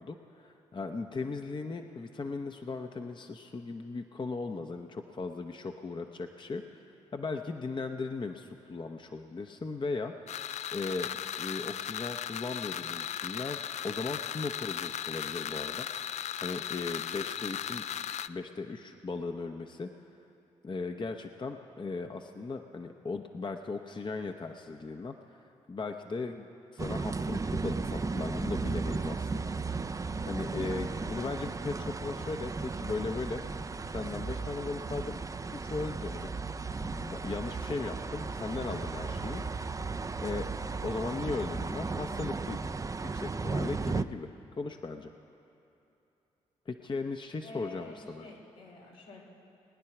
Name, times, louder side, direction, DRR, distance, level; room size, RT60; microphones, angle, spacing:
voice 1, 0.0-6.8 7.1-10.1 10.7-11.1 11.4-15.9 16.4-17.8 18.3-19.9 20.6-25.4 25.7-26.5 26.7-29.5 30.3-33.4 33.9-35.2 35.6-36.3 36.8-39.7 40.2-40.5 40.8-44.3 44.6-45.1 46.7-48.2, left 3 dB, 35° left, 5 dB, 0.8 m, -37 dB
sound 1, 10.3-18.3, left 9 dB, 55° left, 0.4 m, -37 dB
sound 2, 26.8-44.0, right 4 dB, 25° right, 0.5 m, -35 dB
voice 2, 30.0-30.3 47.4-49.2, left 2 dB, 80° left, -4 dB, 3.2 m, -49 dB
20.5 x 9.6 x 5.9 m, 2.8 s
hypercardioid pair, 45°, 14 cm